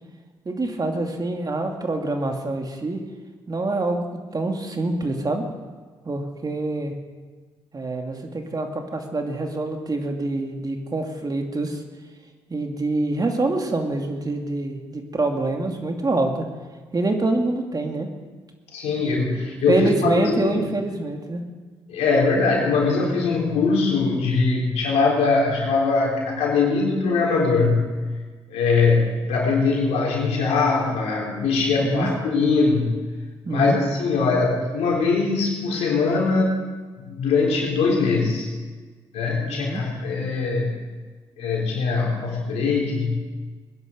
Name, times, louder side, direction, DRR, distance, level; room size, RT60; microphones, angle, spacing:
voice 1, 0.5-3.0 3.5-5.4 6.0-6.9 7.7-11.8 12.5-16.5 16.9-18.1 19.7-21.4 31.8-32.1 33.4-33.8 39.5-39.8, right 2 dB, 35° right, 3 dB, 2.5 m, -25 dB
voice 2, 18.7-20.6 21.9-27.9 28.5-32.9 33.5-36.6 37.0-38.5 39.1-40.8 41.4-43.2, left 4 dB, 80° left, -2 dB, 4.2 m, -21 dB
20.5 x 11.0 x 5.3 m, 1.4 s
supercardioid pair, 50°, 11 cm